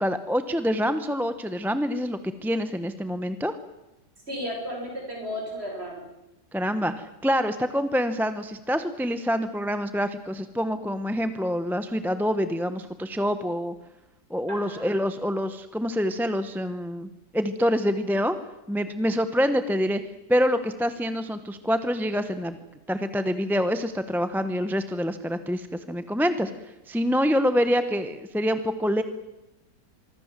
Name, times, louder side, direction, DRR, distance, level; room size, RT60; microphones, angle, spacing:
voice 1, 0.0-3.6 6.5-13.7 14.3-18.4 18.7-20.0 20.3-22.6 22.9-26.5 26.9-29.0, equal, ahead, 10 dB, 0.9 m, -26 dB
voice 2, 4.3-6.1 14.5-14.9, equal, 35° right, 1 dB, 7.7 m, -34 dB
25.0 x 24.0 x 7.6 m, 0.98 s
omnidirectional pair, 1.8 m